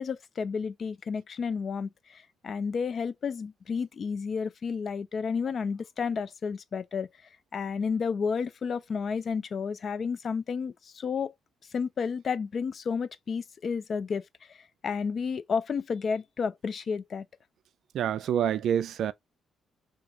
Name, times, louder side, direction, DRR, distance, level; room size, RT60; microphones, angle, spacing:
voice 1, 0.0-7.1 7.5-11.3 11.7-17.3, left 5 dB, 55° left, 0.4 m, -31 dB
voice 2, 17.9-19.1, right 9 dB, 70° right, 0.3 m, -27 dB
2.7 x 2.4 x 3.5 m
supercardioid pair, 55°, 0 cm